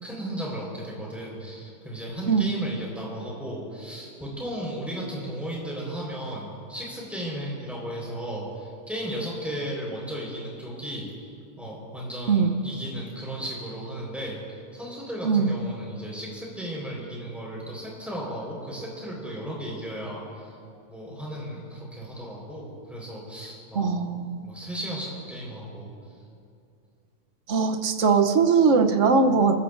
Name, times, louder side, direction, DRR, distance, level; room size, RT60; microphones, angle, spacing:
voice 1, 0.0-11.1 11.6-14.4 14.7-20.5 20.9-23.8 24.4-25.9, right 1 dB, ahead, -4 dB, 4.4 m, -35 dB
voice 2, 23.7-24.4 27.5-29.5, right 5 dB, 60° right, 5 dB, 1.2 m, -20 dB
27.0 x 14.0 x 2.6 m, 2.5 s
omnidirectional pair, 1.6 m